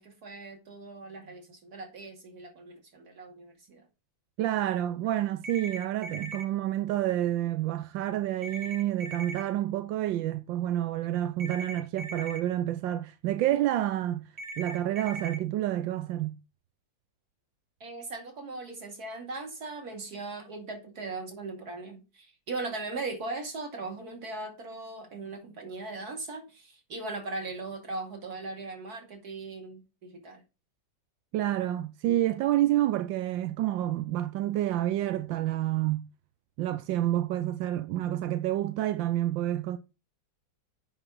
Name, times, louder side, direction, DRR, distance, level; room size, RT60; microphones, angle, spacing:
voice 1, 0.0-3.8 17.8-30.4, right 3 dB, 55° right, 2.9 m, -39 dB
voice 2, 4.4-14.3 14.6-16.3 31.3-36.1 36.6-39.8, right 13 dB, 85° right, 1.4 m, -29 dB
sound 1, 5.4-6.4 8.4-9.4 11.4-12.4 14.4-15.4, right 2 dB, 25° right, 1.3 m, -39 dB
7.9 x 6.0 x 6.2 m
omnidirectional pair, 2.0 m